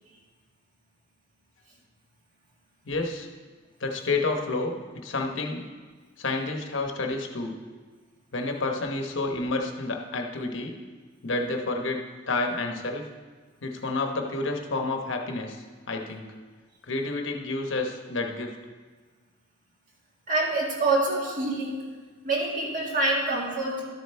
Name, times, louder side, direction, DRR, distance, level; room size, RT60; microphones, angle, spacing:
voice 1, 2.9-3.3 3.8-4.8 5.0-5.7 6.2-7.6 8.3-10.8 11.2-12.0 12.3-13.0 13.6-16.3 16.8-18.6, left 3 dB, 70° left, 3 dB, 1.0 m, -29 dB
voice 2, 20.3-21.8 22.2-23.8, right 2 dB, 40° right, -2 dB, 1.9 m, -26 dB
12.5 x 6.8 x 4.4 m, 1.5 s
head